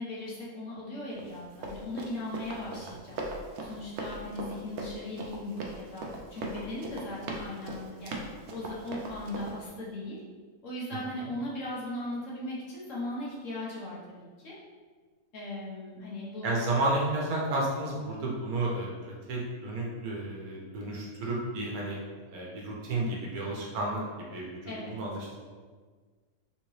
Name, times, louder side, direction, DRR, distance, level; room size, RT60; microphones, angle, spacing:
voice 1, 0.0-3.2 3.6-8.2 8.5-10.2 10.6-14.6 15.3-16.6 24.7-24.9, left 1 dB, 65° left, -6 dB, 1.1 m, -38 dB
Run, 1.2-9.6, right 2 dB, 65° right, 0.7 m, -39 dB
voice 2, 16.4-22.0 22.3-25.3, right 2 dB, 85° right, -3 dB, 1.2 m, -32 dB
3.5 x 2.8 x 3.1 m, 1.5 s
omnidirectional pair, 1.5 m